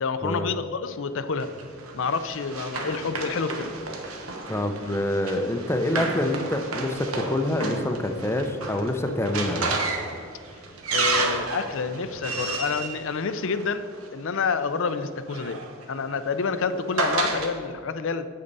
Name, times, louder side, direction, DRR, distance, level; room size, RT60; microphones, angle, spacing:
voice 1, 0.0-1.5 1.9-3.7 10.9-15.6 15.9-18.3, left 5 dB, 65° left, 12 dB, 0.5 m, -28 dB
Run, 1.4-14.0 15.0-17.5, right 3 dB, 90° right, 1.2 m, -31 dB
voice 2, 4.5-9.8, left 1 dB, 10° left, 6 dB, 0.6 m, -26 dB
8.7 x 8.7 x 4.0 m, 2.3 s
head